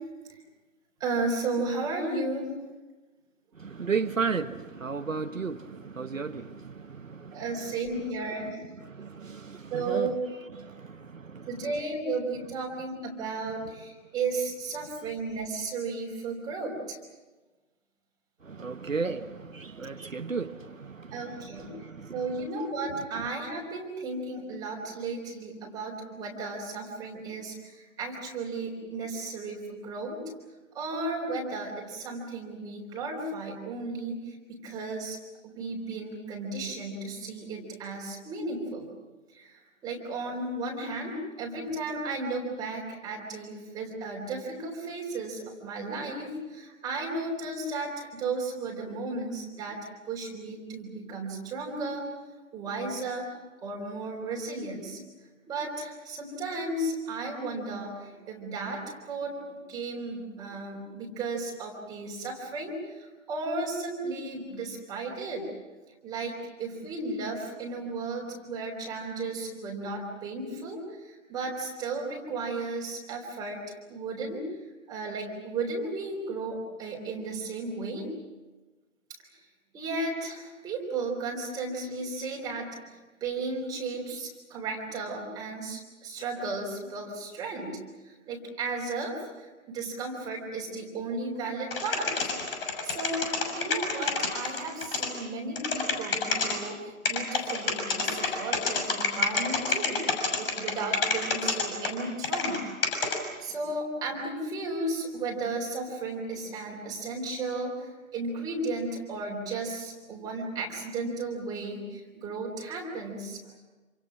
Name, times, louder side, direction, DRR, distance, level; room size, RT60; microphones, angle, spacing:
voice 1, 1.0-2.5 7.3-8.6 9.7-10.2 11.5-17.0 21.1-21.7 22.1-30.3 30.7-35.2 35.4-38.9 39.3-52.1 52.5-53.3 53.6-55.0 55.5-59.4 59.7-65.5 66.0-74.5 74.9-78.1 79.7-92.3 92.8-100.0 100.3-102.7 103.4-113.4, right 3 dB, 10° right, -1 dB, 3.9 m, -34 dB
voice 2, 3.5-7.7 8.8-10.1 10.5-11.5 18.4-22.5, right 5 dB, 70° right, 8 dB, 1.3 m, -34 dB
sound 1, 91.7-95.1 95.5-96.5 97.0-102.6 102.8-103.2, left 4 dB, 45° left, 6.5 m, -27 dB
27.5 x 26.5 x 6.1 m, 1.2 s
figure-of-eight pair, 145°, 41 cm